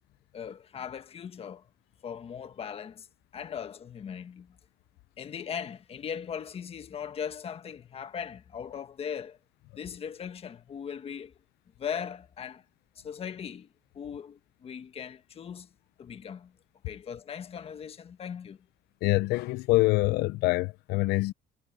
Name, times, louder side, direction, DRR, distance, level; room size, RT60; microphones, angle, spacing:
voice 1, 0.3-1.7 2.0-3.1 3.3-4.6 5.2-9.4 9.7-11.3 11.8-12.6 13.0-13.7 13.9-15.7 16.0-16.5 16.8-18.6, left 7 dB, 35° left, 1.4 m, -39 dB
voice 2, 19.0-21.3, left 20 dB, 70° left, 0.6 m, -25 dB
cardioid pair, 120°, 17 cm